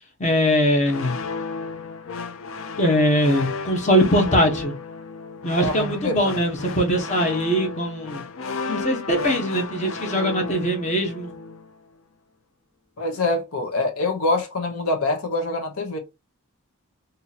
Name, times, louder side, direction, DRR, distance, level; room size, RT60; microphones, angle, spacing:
voice 1, 0.2-1.2 2.8-4.7 5.4-8.2 8.7-11.3, equal, 35° left, 0.9 m, -21 dB
sound 1, 0.9-11.8, left 4 dB, 70° left, 0.5 m, -33 dB
voice 2, 5.6-6.4 13.0-16.0, left 2 dB, 85° left, 0.9 m, -25 dB
2.8 x 2.7 x 4.0 m
head